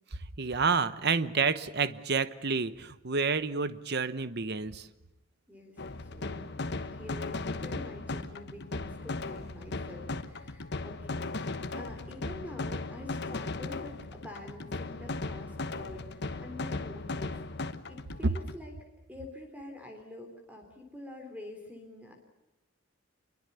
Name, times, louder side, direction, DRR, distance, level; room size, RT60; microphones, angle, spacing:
voice 1, 0.4-4.9, right 5 dB, 50° right, 13 dB, 1.0 m, -29 dB
voice 2, 5.5-6.5 6.8-17.4 17.9-18.7 19.1-22.1, left 2 dB, 5° right, 4 dB, 3.7 m, -47 dB
sound 1, 5.8-18.6, left 3 dB, 55° left, 1.2 m, -37 dB
26.0 x 22.5 x 7.0 m, 1.0 s
head